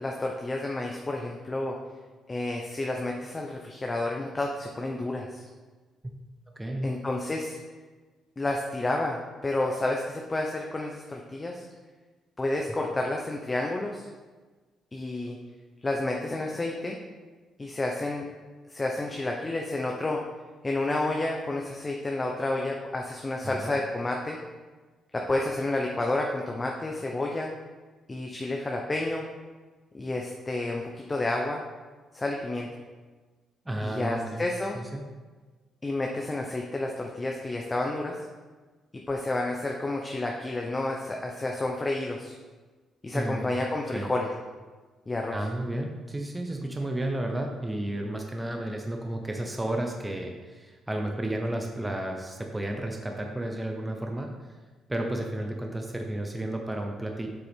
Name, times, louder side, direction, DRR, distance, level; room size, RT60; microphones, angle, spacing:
voice 1, 0.0-1.8 2.3-5.4 6.8-7.6 8.4-11.7 12.4-14.1 14.9-15.4 15.8-17.0 17.6-18.3 18.7-20.2 20.6-24.4 25.1-27.5 28.1-29.3 29.9-31.6 32.1-32.7 33.8-34.8 35.8-38.2 39.1-42.3 43.0-44.3 45.1-45.4, left 2 dB, 25° left, 0 dB, 0.8 m, -30 dB
voice 2, 6.6-6.9 23.4-23.8 33.7-34.5 34.7-35.0 43.1-43.5 43.9-44.1 45.3-54.3 54.9-57.3, right 1 dB, 10° right, 2 dB, 0.8 m, -32 dB
7.9 x 6.6 x 3.6 m, 1.4 s
cardioid pair, 90°, 0 cm